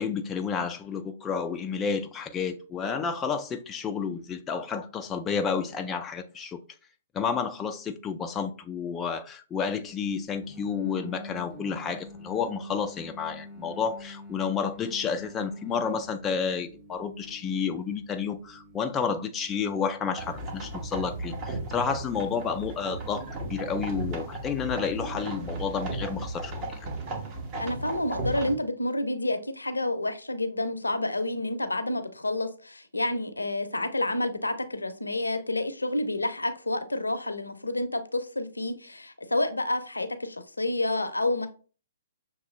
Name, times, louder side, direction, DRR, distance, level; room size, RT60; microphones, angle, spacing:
voice 1, 0.0-6.6 7.1-26.8, left 6 dB, 15° left, 0.3 m, -31 dB
sound 1, 10.4-21.2, left 1 dB, 5° right, 0.9 m, -46 dB
sound 2, 20.2-28.5, right 2 dB, 30° right, 1.1 m, -35 dB
voice 2, 27.6-41.5, left 1 dB, 80° left, 0.6 m, -29 dB
6.3 x 2.9 x 2.4 m
figure-of-eight pair, 120°, 0 cm